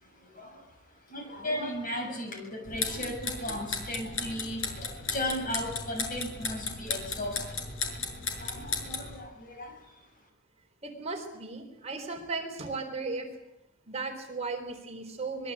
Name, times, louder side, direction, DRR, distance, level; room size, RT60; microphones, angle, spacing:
voice 1, 1.1-7.4 8.4-9.7, left 1 dB, 45° left, 3 dB, 7.4 m, -36 dB
sound 1, 2.7-9.1, left 4 dB, 75° left, 6.7 m, -35 dB
voice 2, 10.8-13.3 13.9-15.5, right 3 dB, 35° right, 3 dB, 4.0 m, -36 dB
25.0 x 22.0 x 8.8 m, 0.93 s
head